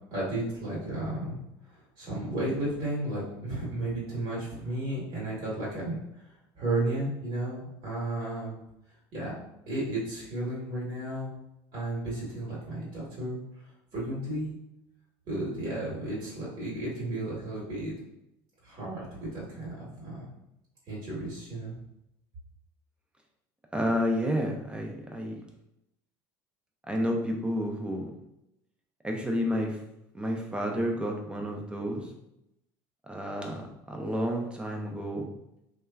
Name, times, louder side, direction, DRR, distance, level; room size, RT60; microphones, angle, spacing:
voice 1, 0.1-1.3 2.0-6.0 6.6-8.5 9.1-9.3 9.7-11.3 11.7-13.4 13.9-14.6 15.3-17.9 18.6-20.2 20.9-21.8, right 1 dB, 50° right, -7 dB, 1.3 m, -33 dB
voice 2, 23.7-25.4 26.9-28.1 29.0-29.8 30.1-32.1 33.1-35.3, equal, 10° right, 1 dB, 0.5 m, -30 dB
2.9 x 2.3 x 2.3 m, 0.85 s
supercardioid pair, 95°, 10 cm